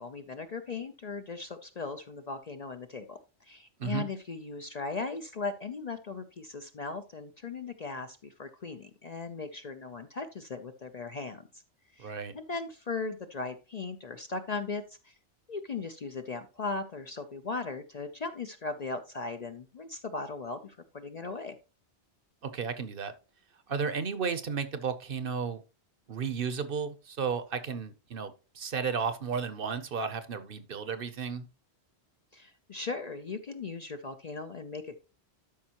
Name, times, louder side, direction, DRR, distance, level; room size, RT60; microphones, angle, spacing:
voice 1, 0.0-11.6 12.0-15.2 15.5-21.6 32.3-35.0, left 4 dB, 45° left, 0.6 m, -38 dB
voice 2, 12.0-12.3 22.4-23.1 23.7-25.6 26.1-31.4, right 6 dB, 55° right, 0.9 m, -33 dB
12.0 x 5.4 x 2.9 m
omnidirectional pair, 1.2 m